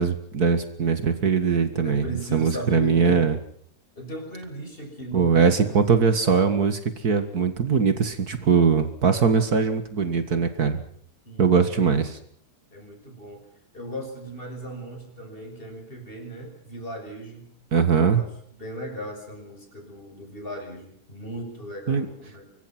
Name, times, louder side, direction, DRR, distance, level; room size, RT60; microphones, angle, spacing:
voice 1, 0.0-3.4 5.1-10.8 11.4-12.2 17.7-18.2 21.9-22.1, right 5 dB, 65° right, 9 dB, 2.3 m, -21 dB
voice 2, 1.8-3.2 4.0-5.8 11.2-11.6 12.7-13.5 13.7-17.5 18.1-22.5, right 1 dB, 30° left, 4 dB, 6.7 m, -37 dB
25.0 x 23.0 x 6.1 m, 0.63 s
omnidirectional pair, 1.8 m